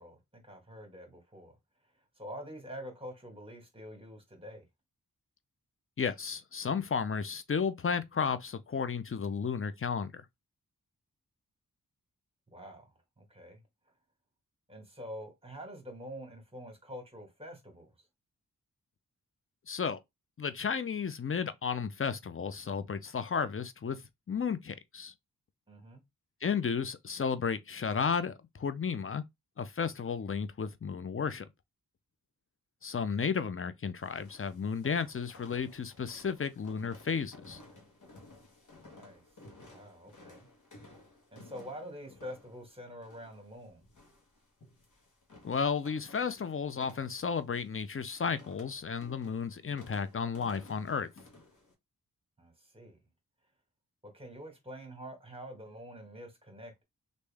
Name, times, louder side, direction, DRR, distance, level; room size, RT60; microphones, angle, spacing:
voice 1, 0.0-1.6 2.2-4.7 12.5-13.6 14.7-18.1 25.7-26.0 38.8-39.2 39.7-40.5 41.3-43.8 52.4-53.0 54.0-56.8, equal, 15° right, 1.8 m, -46 dB
voice 2, 6.0-10.2 19.7-20.0 20.4-24.0 24.3-25.1 26.4-29.2 29.6-31.4 32.8-37.6 45.4-51.1, left 6 dB, 40° left, 0.6 m, -33 dB
sound 1, 34.0-51.7, left 2 dB, 60° left, 1.3 m, -56 dB
3.2 x 2.6 x 3.4 m
cardioid pair, 55°, 35 cm